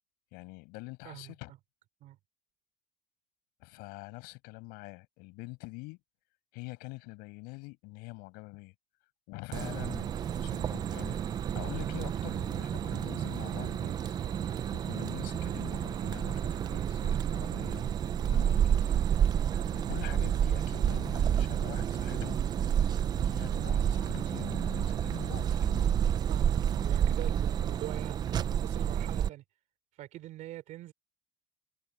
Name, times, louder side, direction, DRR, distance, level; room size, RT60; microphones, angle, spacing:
voice 1, 0.3-1.5 3.6-6.0 6.5-8.7 9.3-11.2 11.5-14.2 14.7-19.0 19.7-22.4 23.1-25.9, left 25 dB, 75° left, 5.9 m, -45 dB
sound 1, 9.5-29.3, right 9 dB, 25° right, 0.5 m, -30 dB
voice 2, 26.3-29.4 30.0-30.9, right 14 dB, 50° right, 3.5 m, -43 dB
cardioid pair, 170°, 16 cm